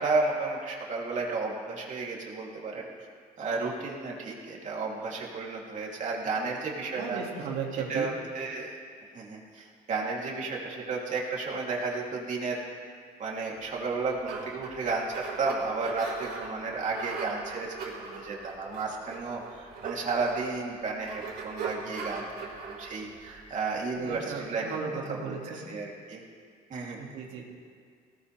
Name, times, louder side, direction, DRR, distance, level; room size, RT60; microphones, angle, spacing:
voice 1, 0.0-2.9 3.4-7.2 7.7-8.7 9.1-12.6 13.2-24.7 25.1-26.2 26.7-27.0, right 3 dB, 45° right, -3 dB, 3.1 m, -33 dB
voice 2, 7.0-8.1 24.0-25.7 27.0-27.4, right 6 dB, 85° right, -1 dB, 2.4 m, -35 dB
sound 1, 13.7-24.4, right 4 dB, 70° right, 4.4 m, -40 dB
19.5 x 18.0 x 3.4 m, 2.1 s
cardioid pair, 110°, 17 cm